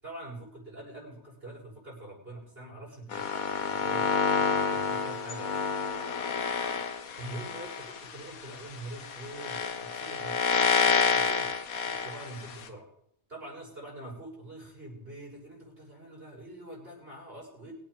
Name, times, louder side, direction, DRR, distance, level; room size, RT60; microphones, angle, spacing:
voice 1, 0.0-5.6 7.1-11.5 11.8-12.9 13.3-17.7, right 1 dB, 45° right, -5 dB, 7.2 m, -44 dB
sound 1, 3.1-12.7, left 5 dB, 80° left, 1.7 m, -29 dB
23.5 x 8.9 x 5.0 m, 0.75 s
omnidirectional pair, 1.5 m